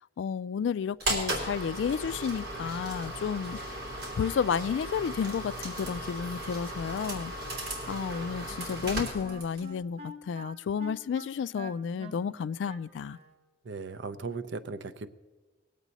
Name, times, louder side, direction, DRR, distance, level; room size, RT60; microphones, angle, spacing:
voice 1, 0.2-3.6 4.2-7.3 7.9-13.2, left 7 dB, 80° left, 0.3 m, -31 dB
sound 1, 1.0-9.7, right 1 dB, 60° right, 3.0 m, -36 dB
Wind instrument woodwind instrument, 7.8-13.4, equal, 35° right, 1.0 m, -46 dB
voice 2, 8.0-8.4 13.6-15.1, right 4 dB, 75° right, 0.6 m, -39 dB
20.0 x 8.1 x 4.1 m
head